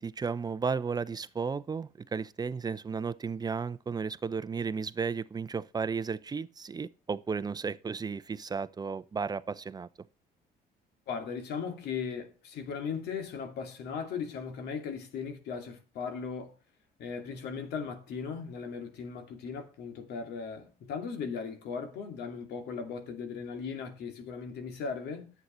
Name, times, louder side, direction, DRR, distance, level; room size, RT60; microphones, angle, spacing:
voice 1, 0.0-9.9, right 5 dB, 25° right, 0.6 m, -34 dB
voice 2, 11.1-16.5 17.0-25.3, left 6 dB, 75° left, 2.5 m, -37 dB
11.0 x 8.1 x 4.3 m
cardioid pair, 110°, 17 cm